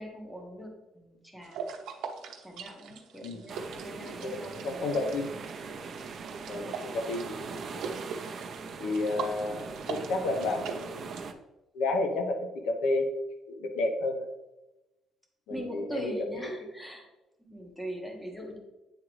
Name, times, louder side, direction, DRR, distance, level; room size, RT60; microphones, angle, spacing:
voice 1, 0.0-1.7 2.4-5.0 6.4-6.9 15.5-17.1 17.4-18.6, equal, 5° left, 1 dB, 1.0 m, -41 dB
sound 1, 1.4-11.3, right 6 dB, 75° right, 0.9 m, -42 dB
sound 2, 3.5-11.3, right 5 dB, 40° right, 0.5 m, -41 dB
voice 2, 4.0-4.4 4.6-5.3 6.5-7.9 8.8-11.1 11.7-13.1 13.5-14.3 15.5-16.5, left 2 dB, 85° left, 4 dB, 0.8 m, -31 dB
9.1 x 3.7 x 3.1 m, 1.0 s
cardioid pair, 155°, 0 cm